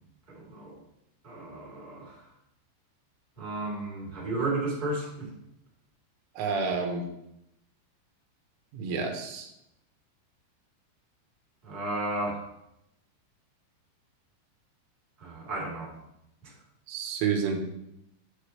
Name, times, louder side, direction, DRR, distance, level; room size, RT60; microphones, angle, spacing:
voice 1, 0.3-0.8 1.2-2.2 3.4-5.3 11.6-12.4 15.2-15.9 16.4-16.5, right 2 dB, 10° right, -6 dB, 2.3 m, -33 dB
voice 2, 6.4-7.0 8.7-9.5 16.9-17.6, right 5 dB, 85° right, 3 dB, 3.7 m, -29 dB
9.5 x 7.7 x 3.3 m, 0.83 s
omnidirectional pair, 5.4 m